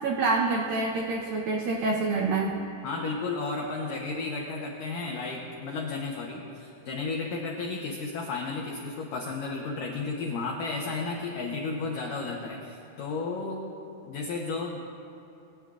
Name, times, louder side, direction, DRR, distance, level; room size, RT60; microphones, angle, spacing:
voice 1, 0.0-2.6, right 3 dB, 90° right, 0 dB, 1.9 m, -27 dB
voice 2, 2.8-13.7 14.1-14.8, left 3 dB, 85° left, 0 dB, 1.9 m, -33 dB
21.0 x 18.0 x 2.5 m, 2.8 s
omnidirectional pair, 5.3 m